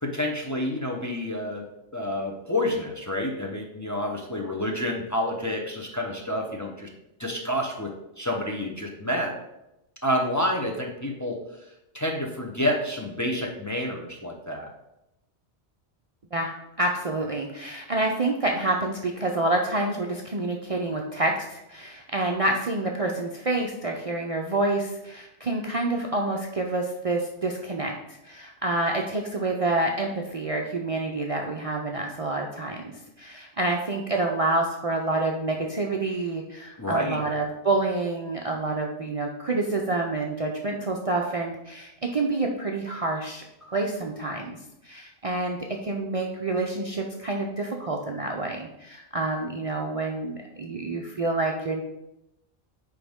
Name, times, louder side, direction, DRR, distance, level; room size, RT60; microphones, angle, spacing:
voice 1, 0.0-1.7 1.9-6.9 7.2-9.3 10.0-11.4 11.9-14.7 36.8-37.2, left 1 dB, 20° left, 0 dB, 0.7 m, -29 dB
voice 2, 16.3-44.6 44.8-51.8, right 2 dB, 40° right, 0 dB, 0.6 m, -28 dB
9.2 x 3.6 x 3.6 m, 0.88 s
omnidirectional pair, 1.1 m